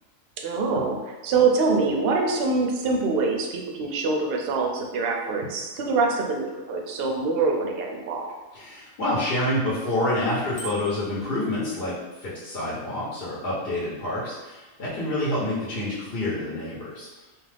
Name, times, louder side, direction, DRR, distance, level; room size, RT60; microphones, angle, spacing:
voice 1, 0.4-8.3, right 4 dB, 65° right, 1 dB, 0.6 m, -24 dB
voice 2, 8.5-17.1, left 1 dB, 50° left, -7 dB, 0.9 m, -28 dB
Bicycle bell, 10.6-11.2, right 3 dB, 75° left, 1.2 m, -39 dB
2.4 x 2.3 x 3.2 m, 1.2 s
omnidirectional pair, 1.4 m